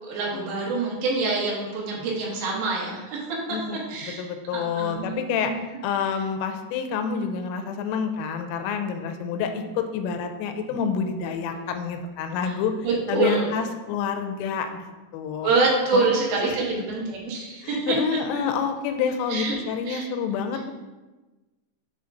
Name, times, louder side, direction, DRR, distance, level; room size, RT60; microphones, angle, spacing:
voice 1, 0.1-3.6 3.9-4.3 4.5-5.6 12.4-12.5 12.8-13.5 15.4-18.0 19.3-19.6 19.9-20.1, right 3 dB, 80° right, -4 dB, 2.1 m, -26 dB
voice 2, 3.5-5.5 5.8-12.7 13.1-14.8 15.1-15.5 15.9-16.1 17.6-20.7, left 6 dB, 85° left, 6 dB, 3.0 m, -28 dB
9.4 x 4.3 x 2.5 m, 1.2 s
omnidirectional pair, 5.9 m